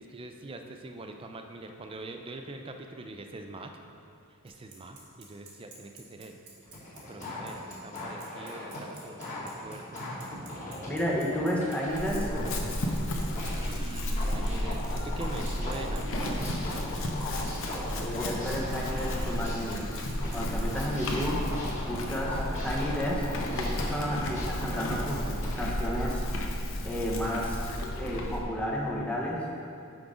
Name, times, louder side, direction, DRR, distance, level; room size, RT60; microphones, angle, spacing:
voice 1, 0.0-3.7 4.4-6.4 7.1-10.1 13.5-16.9, right 2 dB, 25° right, 5 dB, 0.4 m, -43 dB
Bicycle, 4.5-20.4, right 5 dB, 80° right, 1.5 m, -50 dB
sound 1, 6.6-13.7 14.2-19.8 20.2-25.6, left 1 dB, 35° left, 1.6 m, -38 dB
voice 2, 10.8-12.3 18.0-19.9 20.3-21.4 21.9-23.2 23.5-25.2 25.5-26.2 26.8-27.7 28.0-29.4, equal, 5° left, -3 dB, 0.8 m, -32 dB
Chewing mastication / Livestock farm animals working animals, 11.9-28.4, left 1 dB, 65° left, 0.7 m, -33 dB
6.0 x 5.2 x 4.9 m, 2.5 s
head